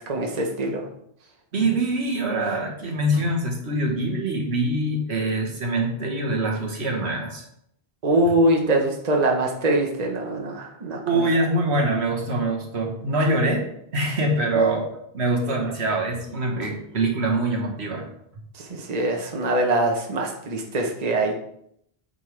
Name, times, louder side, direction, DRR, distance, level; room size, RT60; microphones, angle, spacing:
voice 1, 0.1-0.9 8.0-11.3 18.5-21.4, right 1 dB, 40° right, 1 dB, 1.0 m, -23 dB
voice 2, 1.5-7.5 11.0-13.6 13.9-18.0, right 2 dB, 85° right, 0 dB, 1.7 m, -24 dB
8.6 x 5.4 x 3.3 m, 0.72 s
omnidirectional pair, 1.1 m